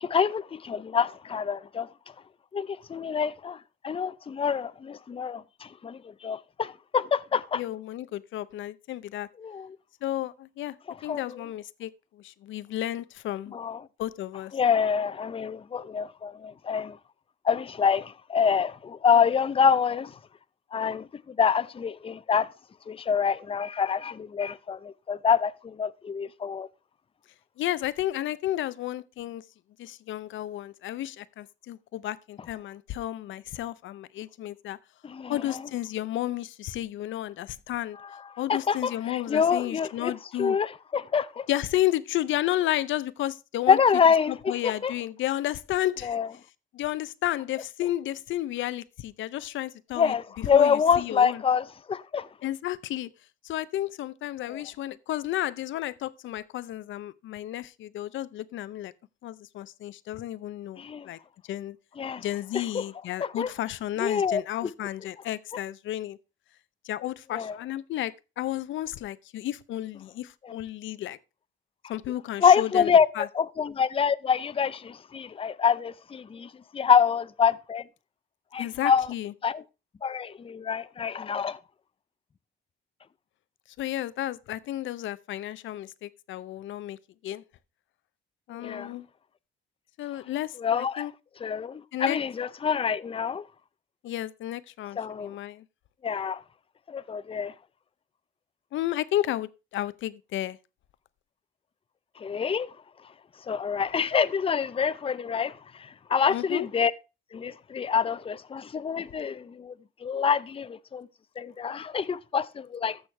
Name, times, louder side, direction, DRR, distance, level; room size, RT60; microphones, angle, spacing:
voice 1, 0.0-1.9 2.5-3.6 3.8-7.6 9.4-9.8 11.1-11.4 13.5-13.8 14.5-17.0 17.4-20.2 20.7-22.5 22.9-26.7 35.0-35.6 38.5-40.1 40.4-41.5 43.7-44.9 46.0-46.3 50.0-52.3 54.4-54.6 60.8-61.1 62.0-62.2 62.5-62.8 63.2-63.5 64.0-64.4 67.3-67.5 70.4-70.5 72.4-77.8 78.5-79.1 79.4-79.6 80.0-81.6 88.5-88.9 90.6-91.1 91.4-93.4 95.0-95.3 96.0-96.4 96.9-97.5 102.2-102.7 103.5-106.9 107.3-109.7 110.0-111.1 111.4-113.0, left 6 dB, 30° left, 0.6 m, -26 dB
voice 2, 7.5-9.3 10.0-10.8 11.0-13.6 14.0-14.5 27.6-29.5 29.8-34.8 35.3-38.0 38.4-40.6 41.5-43.8 44.3-46.2 46.7-51.4 52.4-53.1 53.4-58.9 59.2-61.2 61.5-61.8 62.2-66.2 66.8-71.2 71.9-73.3 78.6-79.3 83.8-87.0 87.2-87.4 88.5-89.1 90.0-91.1 91.9-92.2 94.0-95.6 98.7-100.6 106.3-106.7, left 13 dB, 75° left, 0.6 m, -32 dB
14.5 x 6.3 x 3.3 m
cardioid pair, 90°, 20 cm